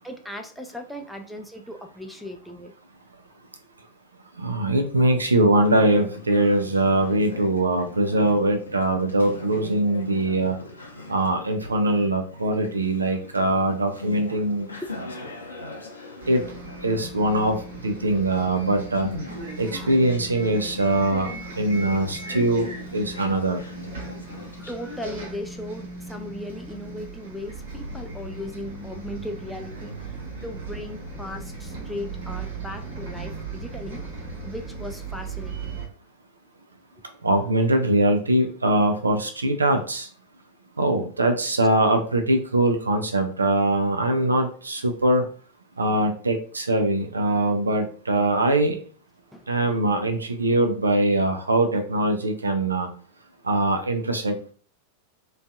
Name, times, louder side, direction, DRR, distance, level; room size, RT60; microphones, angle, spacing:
voice 1, 0.0-2.7 6.4-6.6 10.9-11.1 14.8-14.9 19.5-19.8 24.2-34.0 34.4-35.8 42.4-42.5 49.3-49.5, left 1 dB, ahead, 3 dB, 0.3 m, -37 dB
voice 2, 4.4-10.6 11.1-14.7 16.3-16.4 16.8-17.6 17.8-19.1 19.6-21.3 21.6-23.6 37.2-40.1 40.8-45.2 45.8-48.8 49.5-52.9 53.4-54.5, right 1 dB, 75° right, 5 dB, 0.4 m, -22 dB
Conversation, 5.5-25.2, left 1 dB, 75° left, 0.5 m, -41 dB
Bus, 16.2-35.9, right 3 dB, 55° right, 0.9 m, -37 dB
2.5 x 2.3 x 2.3 m, 0.42 s
figure-of-eight pair, 90°, 0 cm